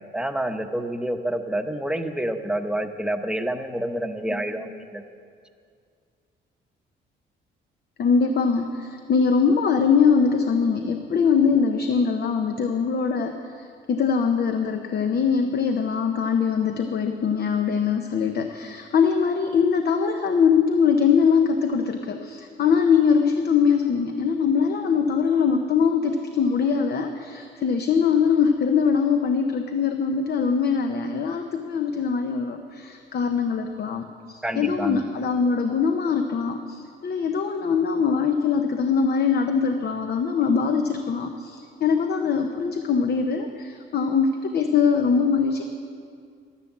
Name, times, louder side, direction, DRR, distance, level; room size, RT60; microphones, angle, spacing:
voice 1, 0.1-5.0 34.4-35.0, right 1 dB, 5° right, 6 dB, 0.9 m, -28 dB
voice 2, 8.0-45.6, left 6 dB, 55° left, 6 dB, 0.9 m, -22 dB
12.0 x 11.0 x 7.3 m, 2.3 s
cardioid pair, 90°, 20 cm